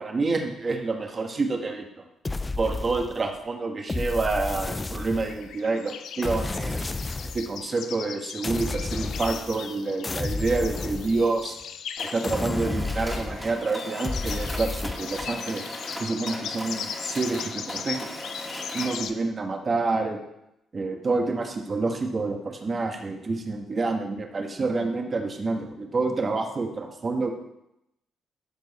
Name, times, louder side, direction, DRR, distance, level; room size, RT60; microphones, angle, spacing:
voice 1, 0.0-1.9 2.6-6.9 7.3-11.6 12.1-15.6 16.0-18.1 18.7-20.2 20.7-27.3, right 3 dB, 35° right, 4 dB, 1.3 m, -28 dB
sound 1, 2.2-3.4 3.9-5.5 6.2-7.5 8.4-9.7 10.0-11.6 12.2-13.6 14.0-15.3, left 3 dB, 20° left, 0.3 m, -31 dB
sound 2, 3.9-12.7 12.9-19.1, left 8 dB, 75° left, 0.5 m, -39 dB
Mechanisms, 12.0-19.1, equal, 5° left, 2.0 m, -38 dB
13.5 x 4.6 x 4.1 m, 0.86 s
cardioid pair, 90°, 0 cm